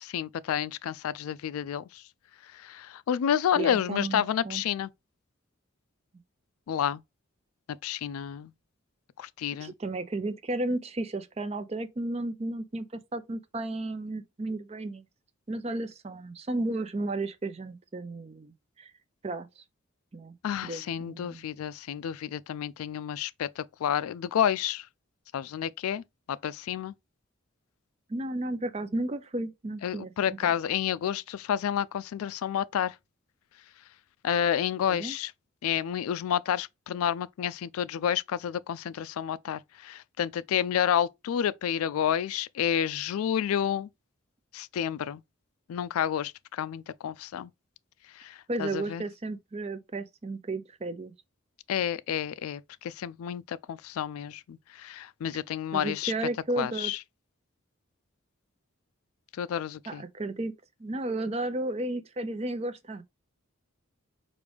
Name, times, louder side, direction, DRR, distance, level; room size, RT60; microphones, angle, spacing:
voice 1, 0.0-2.0 2.4-4.9 6.7-7.0 7.8-8.5 9.2-9.7 20.4-24.9 25.3-26.9 29.8-33.0 34.2-35.3 35.6-43.9 44.5-45.2 45.7-47.5 48.1-49.0 51.7-56.1 56.6-57.0 59.3-60.0, left 9 dB, 85° left, 0.3 m, -30 dB
voice 2, 3.6-4.6 9.6-15.0 15.5-18.9 19.2-19.6 20.1-20.3 20.6-21.5 28.1-30.5 34.9-35.2 48.5-51.1 55.7-56.9 59.9-60.5 60.8-63.0, right 2 dB, 30° right, 0.4 m, -33 dB
4.9 x 2.5 x 3.3 m
head